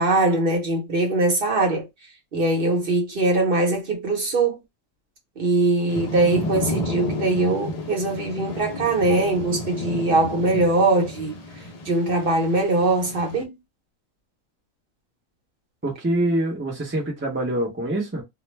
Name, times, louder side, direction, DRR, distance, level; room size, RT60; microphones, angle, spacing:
voice 1, 0.0-1.9 2.3-4.6 5.4-11.4 11.8-13.5, right 2 dB, 45° right, 0.9 m, -21 dB
Thunder / Rain, 5.9-13.4, left 2 dB, 85° left, 0.3 m, -32 dB
voice 2, 15.8-18.2, right 1 dB, 20° right, 0.3 m, -25 dB
2.4 x 2.1 x 3.1 m
omnidirectional pair, 1.5 m